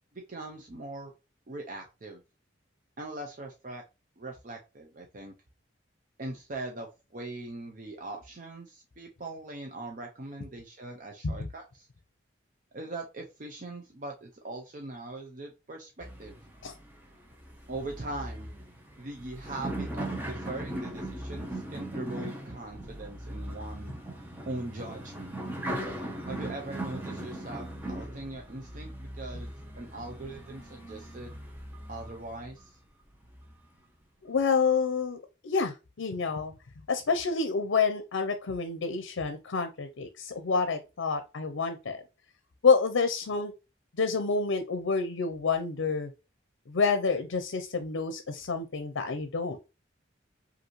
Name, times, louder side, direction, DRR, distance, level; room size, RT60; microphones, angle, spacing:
voice 1, 0.3-1.1 1.5-2.2 3.0-3.8 4.2-5.3 6.2-11.9 12.7-16.4 17.7-18.5 19.0-24.0 24.5-25.4 26.3-31.4 31.9-32.8, right 2 dB, 40° right, 2 dB, 0.5 m, -41 dB
sound 1, 16.0-32.7 33.2-33.8, right 1 dB, 10° right, 0.7 m, -39 dB
voice 2, 34.2-36.5 36.9-42.0 42.6-43.5 43.9-46.1 46.7-49.7, left 5 dB, 85° left, 8 dB, 0.5 m, -28 dB
5.2 x 2.6 x 3.0 m, 0.28 s
head